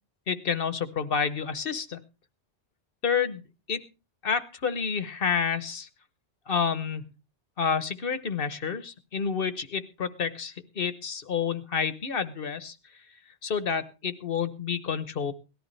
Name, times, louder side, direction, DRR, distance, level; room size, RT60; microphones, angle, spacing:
voice 1, 0.3-2.0 3.0-3.4 3.7-3.8 4.2-5.9 6.5-7.1 7.6-12.7 13.4-15.3, left 6 dB, 60° left, 13 dB, 1.2 m, -29 dB
18.0 x 13.5 x 3.3 m, 0.31 s
omnidirectional pair, 1.1 m